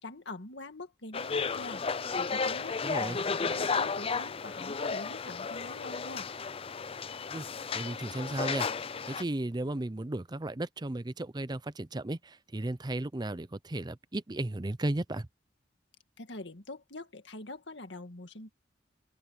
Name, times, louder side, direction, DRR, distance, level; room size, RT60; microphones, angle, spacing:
voice 1, 0.0-1.8 2.2-6.3 16.2-18.5, left 2 dB, 65° left, 2.1 m, -44 dB
sound 1, 1.1-9.2, left 5 dB, 30° left, 0.5 m, -33 dB
voice 2, 2.8-3.2 7.3-7.5 7.7-8.7 9.0-15.3, right 1 dB, 20° right, 0.6 m, -35 dB
open air
head